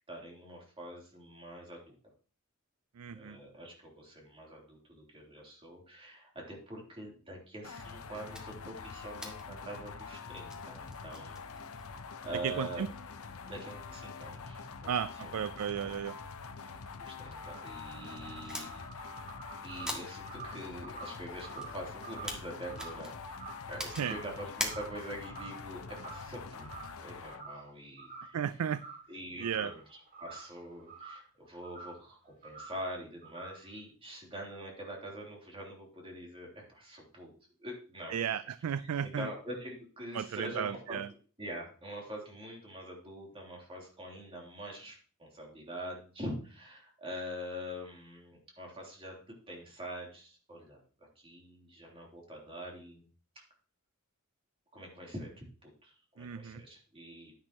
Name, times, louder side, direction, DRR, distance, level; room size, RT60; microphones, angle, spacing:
voice 1, 0.1-1.9 3.1-11.4 12.2-12.8 13.5-14.9 15.2-15.5 15.8-15.9 17.0-18.9 19.6-23.1 23.7-26.7 27.0-28.4 29.1-37.3 37.6-38.3 39.0-41.0 41.4-49.2 49.5-50.8 51.2-53.0 54.7-57.3, equal, 25° right, -2 dB, 3.5 m, -44 dB
voice 2, 3.0-3.4 12.4-12.9 14.9-16.1 24.0-24.1 28.3-28.8 29.4-29.7 38.1-39.3 40.1-41.1 56.2-56.6, right 8 dB, 80° right, 16 dB, 0.4 m, -34 dB
sound 1, 7.6-27.4, left 5 dB, 70° left, 0.9 m, -45 dB
sound 2, 8.3-25.3, equal, 5° right, 1.6 m, -47 dB
sound 3, 16.7-24.3 24.6-25.0 25.2-26.3 26.6-26.9 27.3-27.7 28.0-29.1 29.4-31.3 31.6-32.0 32.4-32.8 33.2-33.7, right 4 dB, 40° right, 3.1 m, -49 dB
10.5 x 10.5 x 3.0 m, 0.39 s
head